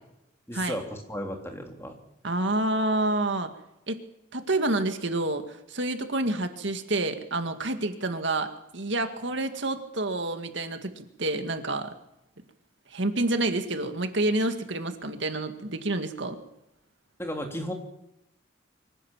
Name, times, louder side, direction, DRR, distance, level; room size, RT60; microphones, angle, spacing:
voice 1, 0.5-1.9 17.2-17.7, equal, 15° left, 3 dB, 3.4 m, -34 dB
voice 2, 2.2-3.5 3.9-4.0 4.3-11.9 12.9-16.4, right 2 dB, 65° right, 7 dB, 2.0 m, -28 dB
24.5 x 16.5 x 7.4 m, 0.85 s
head